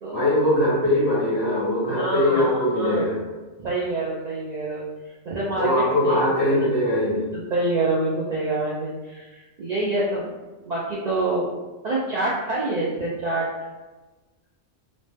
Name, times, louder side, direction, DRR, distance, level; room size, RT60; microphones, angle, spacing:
voice 1, 0.1-3.2 5.5-7.3, left 1 dB, 50° left, -8 dB, 1.5 m, -21 dB
voice 2, 1.9-3.1 3.6-4.8 5.3-6.2 6.5-6.7 7.5-10.3 10.6-11.5 11.8-13.5, right 2 dB, 75° right, -6 dB, 0.3 m, -26 dB
3.0 x 2.0 x 3.2 m, 1.2 s
omnidirectional pair, 1.3 m